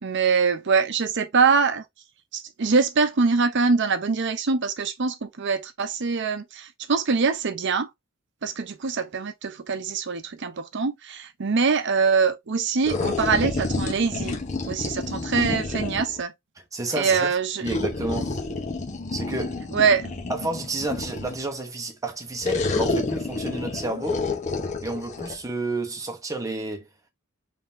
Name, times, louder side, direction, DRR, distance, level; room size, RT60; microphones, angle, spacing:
voice 1, 0.0-1.8 2.3-7.9 8.4-14.4 14.7-16.3 16.9-17.6 19.7-20.1, right 5 dB, 60° right, 0.7 m, -23 dB
sound 1, 12.8-16.2 17.6-21.5 22.4-25.3, left 3 dB, 35° left, 0.8 m, -29 dB
voice 2, 16.7-17.3 17.6-18.3 19.1-19.6 20.3-24.2 24.8-26.9, right 2 dB, 15° right, 1.0 m, -30 dB
3.8 x 3.4 x 2.6 m
head